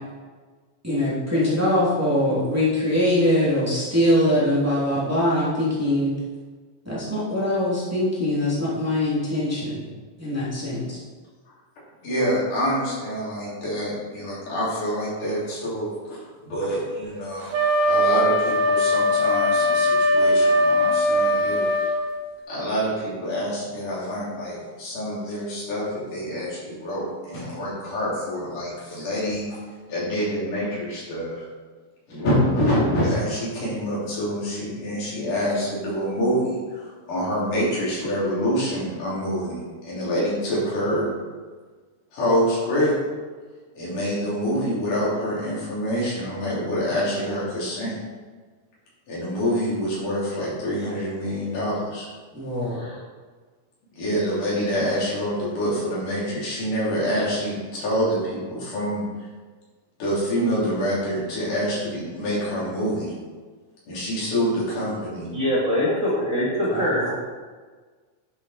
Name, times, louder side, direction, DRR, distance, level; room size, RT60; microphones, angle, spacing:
voice 1, 0.8-6.1 6.8-9.9 10.2-11.0 52.3-52.8 66.7-67.1, left 1 dB, 5° right, -8 dB, 2.7 m, -22 dB
voice 2, 12.0-17.5 17.8-21.7 22.5-29.4 29.9-31.4 32.1-41.1 42.1-43.0 43.7-47.9 49.1-52.1 52.6-53.0 54.0-59.0 60.0-63.1 63.9-65.3, equal, 85° left, -7 dB, 5.2 m, -26 dB
Wind instrument woodwind instrument, 17.5-22.0, left 1 dB, 90° right, 3.3 m, -20 dB
voice 3, 65.3-67.1, equal, 25° right, -7 dB, 2.7 m, -23 dB
9.9 x 8.1 x 4.4 m, 1.4 s
omnidirectional pair, 3.5 m